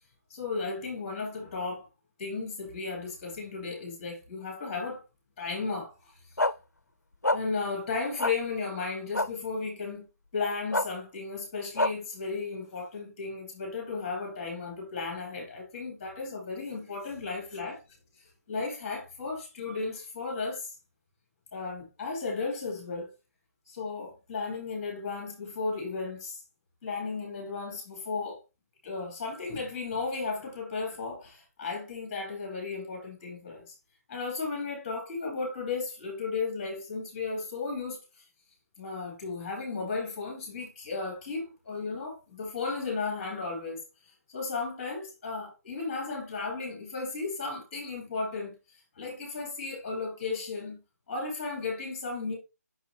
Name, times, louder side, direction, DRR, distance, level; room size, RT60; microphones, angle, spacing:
voice 1, 0.3-1.9 2.2-5.0 5.4-6.1 7.3-10.0 10.3-17.8 18.2-20.8 21.5-23.1 23.7-26.4 26.8-28.4 28.8-33.7 34.1-38.0 38.8-43.8 44.3-50.8 51.1-52.3, left 4 dB, 20° left, 2.5 m, -35 dB
sound 1, 6.4-6.5 7.2-7.4 8.2-8.3 9.1-9.3 10.7-10.9 11.8-11.9, left 2 dB, 85° left, 0.5 m, -25 dB
6.4 x 5.5 x 2.8 m
figure-of-eight pair, 150°, 9 cm